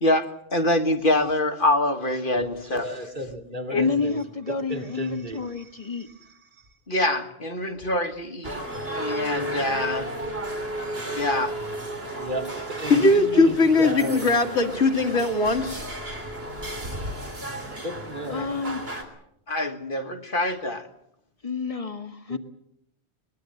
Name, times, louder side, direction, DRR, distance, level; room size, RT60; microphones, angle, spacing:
voice 1, 0.0-3.0 3.7-3.8 6.9-8.6 8.9-10.1 11.2-11.6 18.3-18.5 19.5-20.8, left 1 dB, 50° left, 7 dB, 1.8 m, -25 dB
voice 2, 2.3-4.0 4.7-5.4 12.2-13.5 13.8-14.3 17.4-18.5 22.3-22.4, right 1 dB, 45° right, 4 dB, 3.0 m, -33 dB
voice 3, 3.7-6.1 18.3-18.9 21.4-22.4, left 4 dB, 30° left, 8 dB, 1.6 m, -29 dB
sound 1, 8.4-19.0, right 1 dB, 60° right, 3.8 m, -33 dB
voice 4, 12.9-15.8, left 3 dB, 90° left, 4 dB, 2.5 m, -20 dB
22.5 x 21.5 x 7.8 m, 0.75 s
omnidirectional pair, 1.1 m